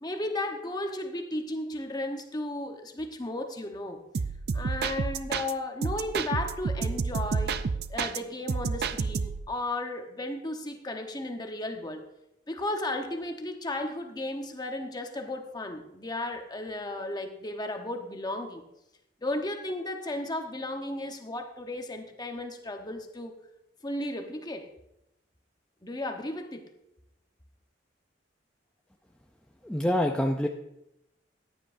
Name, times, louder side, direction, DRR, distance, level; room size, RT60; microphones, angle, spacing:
voice 1, 0.0-4.0 4.5-7.5 7.9-12.1 12.5-18.6 19.2-23.4 23.8-24.7 25.8-26.6, left 1 dB, 20° left, 4 dB, 1.0 m, -34 dB
sound 1, 4.1-5.5 5.8-8.2 8.5-9.5, right 5 dB, 60° right, 0.4 m, -30 dB
voice 2, 29.6-30.5, left 1 dB, 5° left, 1 dB, 0.5 m, -26 dB
15.0 x 9.9 x 2.6 m, 0.85 s
head